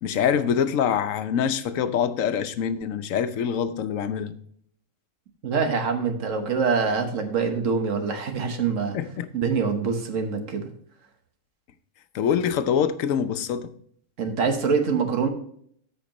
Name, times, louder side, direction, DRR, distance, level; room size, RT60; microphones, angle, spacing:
voice 1, 0.0-4.3 8.9-9.3 12.1-13.7, left 8 dB, 80° left, 1.1 m, -25 dB
voice 2, 5.4-9.0 9.3-10.7 14.2-15.3, right 5 dB, 75° right, 1.5 m, -25 dB
13.5 x 5.1 x 3.0 m
omnidirectional pair, 1.3 m